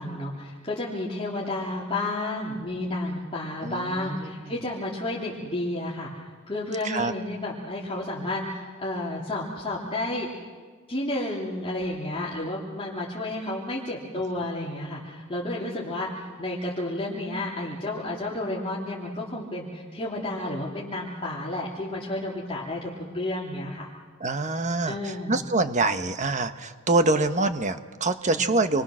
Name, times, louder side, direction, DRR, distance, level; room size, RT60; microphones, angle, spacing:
voice 1, 0.0-6.1 6.5-10.3 10.9-23.9 24.9-25.4 28.2-28.4, left 1 dB, 25° left, -6 dB, 2.8 m, -31 dB
voice 2, 3.6-4.5 6.8-7.1 24.2-28.8, right 2 dB, 35° right, 9 dB, 1.2 m, -25 dB
28.5 x 23.0 x 6.3 m, 1.5 s
head